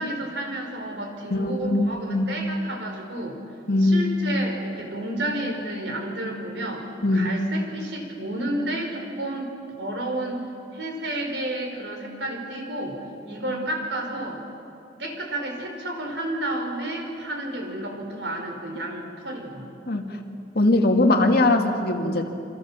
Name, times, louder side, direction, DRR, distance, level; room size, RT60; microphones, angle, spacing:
voice 1, 0.0-3.4 3.8-6.9 7.1-9.5 9.8-10.4 10.7-13.0 13.2-14.4 15.0-19.6, right 1 dB, 70° right, 3 dB, 5.1 m, -31 dB
voice 2, 1.3-2.3 3.7-4.2 7.0-7.3 19.8-20.1 20.5-22.3, left 2 dB, 60° left, 3 dB, 2.4 m, -21 dB
28.0 x 26.0 x 7.5 m, 2.6 s
head